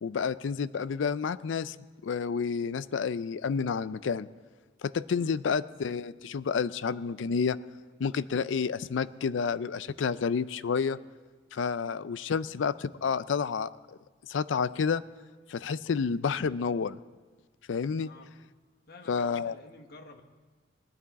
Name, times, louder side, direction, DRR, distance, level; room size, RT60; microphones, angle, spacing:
voice 1, 0.0-1.8 2.0-4.3 4.8-7.6 8.0-11.0 11.5-13.7 14.3-15.0 15.5-17.0 17.7-18.1 19.1-19.6, left 6 dB, 75° left, 17 dB, 0.4 m, -30 dB
voice 2, 18.9-20.2, left 3 dB, 55° left, 6 dB, 1.1 m, -51 dB
18.5 x 11.5 x 4.1 m, 1.4 s
head